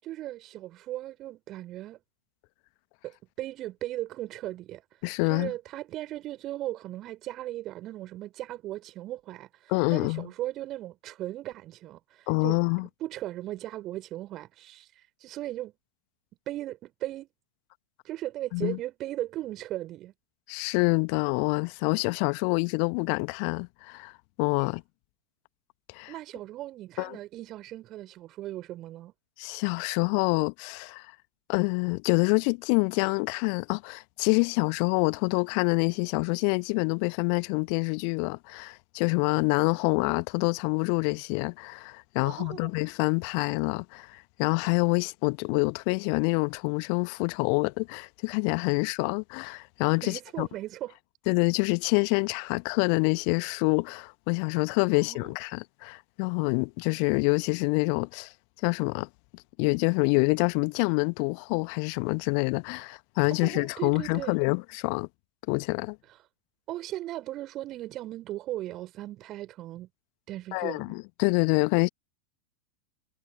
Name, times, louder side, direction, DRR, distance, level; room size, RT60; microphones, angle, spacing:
voice 1, 0.0-2.0 3.0-4.8 5.3-12.6 13.0-15.7 16.5-17.3 18.0-20.1 26.1-29.1 42.2-42.7 50.0-50.9 55.0-55.3 63.3-64.4 66.7-69.9 70.3-70.9, right 14 dB, 35° right, 6.3 m, -37 dB
voice 2, 5.0-5.5 9.7-10.3 12.3-12.9 18.5-18.8 20.5-24.1 24.4-24.8 25.9-26.1 27.0-27.2 29.4-31.1 31.5-50.5 51.3-58.3 58.6-59.1 59.6-65.1 65.5-66.0 70.5-71.9, left 40 dB or more, 45° left, 1.5 m, -26 dB
figure-of-eight pair, 90°, 0 cm